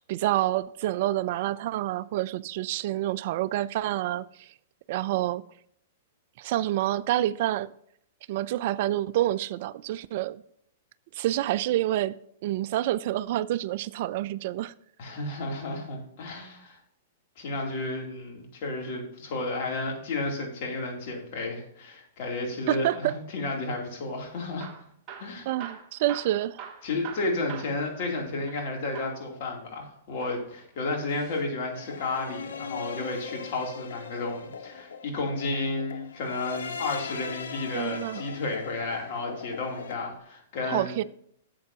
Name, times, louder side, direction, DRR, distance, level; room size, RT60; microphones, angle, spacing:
voice 1, 0.1-4.5 4.9-5.4 6.4-7.7 8.3-10.4 11.1-12.1 12.4-14.7 22.7-23.1 25.5-26.6 37.7-38.2 40.7-41.0, right 14 dB, 55° right, 0.3 m, -28 dB
voice 2, 15.0-16.8 17.4-24.7 25.2-25.5 26.8-41.0, left 2 dB, 55° left, 2.9 m, -32 dB
Hammer / Drill, 24.4-28.7 28.9-29.3 30.1-31.5 33.3-34.5 36.2-36.7 37.4-38.2 38.9-39.1 39.4-39.5 40.2-40.3, right 8 dB, 35° right, 1.5 m, -45 dB
sound 1, 31.7-40.0, left 6 dB, 85° left, 1.0 m, -40 dB
12.0 x 7.6 x 2.8 m
hypercardioid pair, 130°, 0 cm